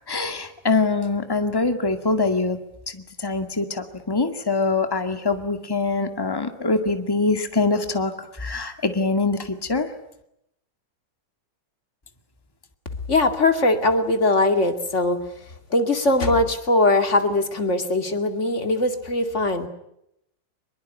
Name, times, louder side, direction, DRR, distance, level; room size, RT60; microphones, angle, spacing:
voice 1, 0.0-2.6 2.9-9.9, left 3 dB, 15° left, 7 dB, 2.0 m, -24 dB
voice 2, 13.1-15.2 15.7-19.7, left 2 dB, 40° left, 7 dB, 2.7 m, -21 dB
24.5 x 22.0 x 9.4 m, 0.79 s
omnidirectional pair, 1.9 m